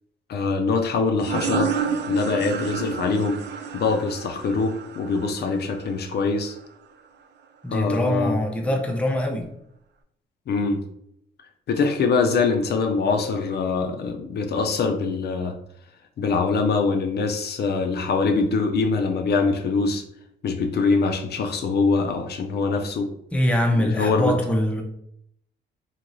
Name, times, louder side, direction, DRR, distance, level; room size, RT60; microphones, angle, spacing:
voice 1, 0.3-1.7 2.1-3.4 3.7-6.6 7.7-8.8 10.5-10.8 11.7-15.6 16.2-20.0 20.4-23.1 23.8-24.4, left 4 dB, 55° left, 4 dB, 0.5 m, -23 dB
sound 1, 1.2-6.6, right 6 dB, 60° right, 0.4 m, -30 dB
voice 2, 7.6-9.5 23.3-24.8, left 1 dB, 5° left, 2 dB, 0.5 m, -23 dB
3.0 x 2.8 x 2.6 m, 0.73 s
cardioid pair, 90°, 20 cm